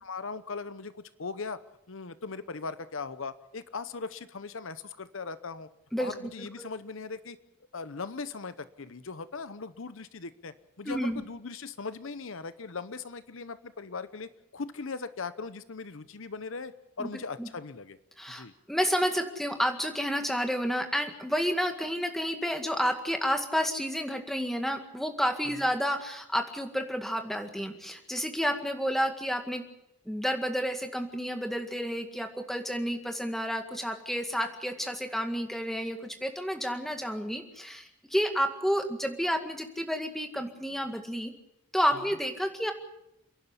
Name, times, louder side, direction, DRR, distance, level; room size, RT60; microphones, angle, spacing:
voice 1, 0.0-1.6 1.9-5.7 6.0-7.4 7.7-18.0 18.4-18.5 25.4-25.7, left 4 dB, 65° left, 13 dB, 0.9 m, -39 dB
voice 2, 5.9-6.7 10.9-11.2 17.0-17.1 17.4-17.5 18.2-29.6 30.1-41.3 41.7-42.7, equal, ahead, 5 dB, 1.9 m, -30 dB
29.0 x 11.0 x 9.8 m, 0.82 s
head